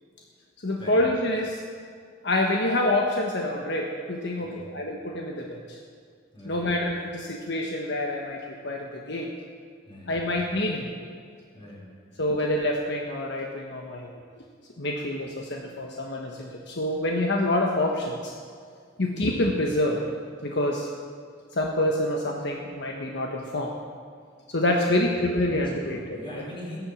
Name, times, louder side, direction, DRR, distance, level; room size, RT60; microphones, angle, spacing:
voice 1, 0.6-1.6 2.2-5.8 6.4-9.3 10.1-10.9 12.2-14.1 14.8-18.3 19.0-20.0 20.4-20.9 21.5-23.7 24.5-26.0, left 1 dB, 65° left, 0 dB, 1.3 m, -27 dB
voice 2, 9.8-10.2 11.5-12.2 24.9-25.2 25.5-26.8, left 1 dB, 25° left, -5 dB, 5.0 m, -41 dB
16.0 x 11.0 x 7.3 m, 2.1 s
head